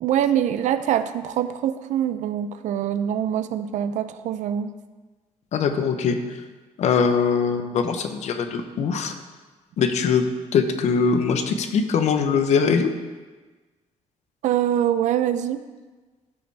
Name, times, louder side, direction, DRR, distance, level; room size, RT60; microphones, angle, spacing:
voice 1, 0.0-4.7 14.4-15.6, right 10 dB, 80° right, 12 dB, 0.5 m, -24 dB
voice 2, 5.5-6.2 6.8-9.1 9.8-10.2 10.5-12.9, left 6 dB, 70° left, 7 dB, 0.8 m, -22 dB
13.0 x 5.3 x 3.4 m, 1.3 s
cardioid pair, 145°, 12 cm